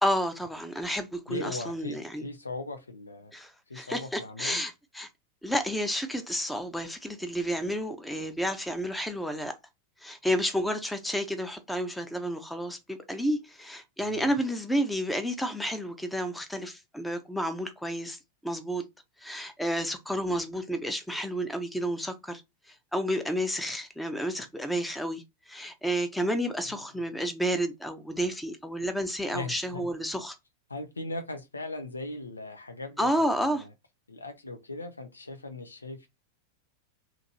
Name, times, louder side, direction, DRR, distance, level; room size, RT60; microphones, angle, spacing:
voice 1, 0.0-2.3 3.3-5.1 5.4-9.5 10.0-18.2 18.4-18.8 19.2-22.4 22.9-30.4 33.0-33.6, equal, 5° left, 0.7 m, -31 dB
voice 2, 1.3-3.3 3.7-4.6 14.0-14.4 29.3-29.9 30.7-33.7 34.1-36.1, left 2 dB, 80° left, 0.6 m, -39 dB
2.9 x 2.5 x 4.0 m
figure-of-eight pair, 90°, 0 cm